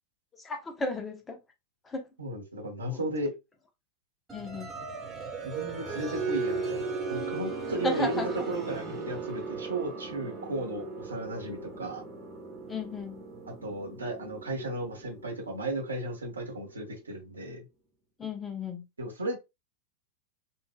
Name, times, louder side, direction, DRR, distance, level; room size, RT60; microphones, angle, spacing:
voice 1, 0.4-1.4 1.8-2.1 2.9-3.0 4.3-4.7 7.8-8.4 12.7-13.3 18.2-18.8, left 2 dB, 15° left, 0.9 m, -34 dB
voice 2, 2.2-3.3 5.4-12.0 13.6-17.6 19.0-19.4, right 2 dB, 75° right, 1.2 m, -35 dB
sound 1, 4.3-16.8, right 3 dB, 15° right, 1.4 m, -37 dB
5.5 x 2.6 x 2.2 m
figure-of-eight pair, 90°, 0 cm